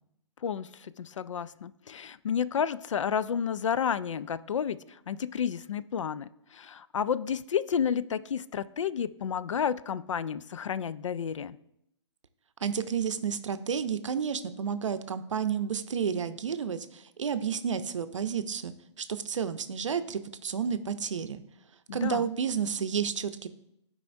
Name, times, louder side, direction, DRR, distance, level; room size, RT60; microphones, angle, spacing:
voice 1, 0.4-4.8 5.1-11.6 21.9-22.3, left 7 dB, 85° left, 16 dB, 0.4 m, -31 dB
voice 2, 12.6-18.7 19.0-21.4 21.9-23.5, right 7 dB, 85° right, 11 dB, 0.6 m, -31 dB
11.5 x 4.8 x 2.6 m, 0.79 s
hypercardioid pair, 140°, 15 cm